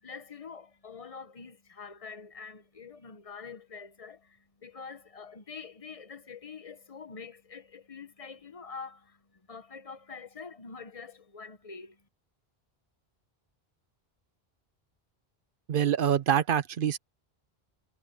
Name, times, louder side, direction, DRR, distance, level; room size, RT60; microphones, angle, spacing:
voice 1, 0.0-12.0, left 5 dB, 35° left, 1.0 m, -45 dB
voice 2, 15.7-17.0, right 9 dB, 60° right, 0.8 m, -25 dB
omnidirectional pair, 1.1 m